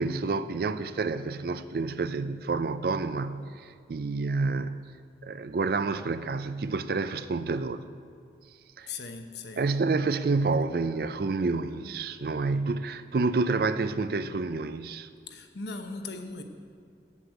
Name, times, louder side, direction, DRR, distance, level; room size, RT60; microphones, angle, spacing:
voice 1, 0.0-4.9 5.2-7.8 8.8-8.9 9.6-15.1, right 3 dB, 55° right, 13 dB, 0.4 m, -29 dB
voice 2, 8.9-9.6 15.3-16.4, left 3 dB, 70° left, 5 dB, 1.0 m, -38 dB
8.3 x 8.0 x 9.0 m, 2.3 s
head